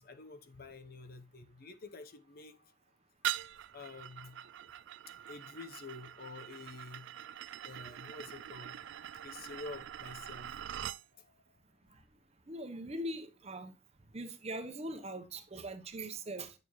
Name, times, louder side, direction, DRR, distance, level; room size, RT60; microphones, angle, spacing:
voice 1, 0.0-2.7 3.7-4.5 5.3-7.1 7.6-10.7 11.1-11.4, left 3 dB, 55° left, 0.9 m, -49 dB
sound 1, 3.2-11.0, right 11 dB, 70° right, 0.3 m, -43 dB
voice 2, 12.5-13.7 14.1-16.5, right 1 dB, 35° right, 0.9 m, -41 dB
8.6 x 6.7 x 3.1 m
head